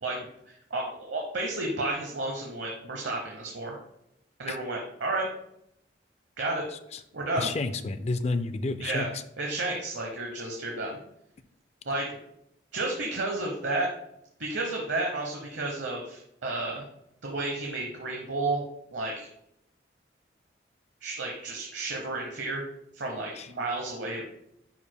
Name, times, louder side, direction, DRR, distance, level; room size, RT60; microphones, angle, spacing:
voice 1, 0.0-3.8 4.4-5.3 6.4-6.7 7.1-7.5 8.8-9.1 9.4-11.0 11.9-12.2 12.7-13.9 14.4-16.8 17.2-18.6 18.9-19.3 21.0-22.6 22.9-24.2, right 2 dB, 85° right, 0 dB, 1.0 m, -32 dB
voice 2, 7.4-9.1 23.3-23.5, left 3 dB, 35° left, 11 dB, 0.4 m, -30 dB
10.5 x 4.8 x 2.3 m, 0.76 s
head